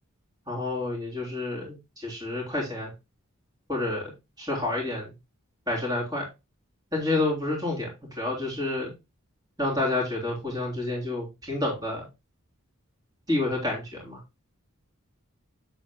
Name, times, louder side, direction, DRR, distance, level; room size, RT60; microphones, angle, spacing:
voice 1, 0.5-2.9 3.7-4.1 4.4-5.1 5.7-6.3 6.9-8.9 9.6-12.1 13.3-14.2, left 2 dB, 20° right, -3 dB, 3.4 m, -29 dB
8.0 x 8.0 x 2.2 m, 0.24 s
head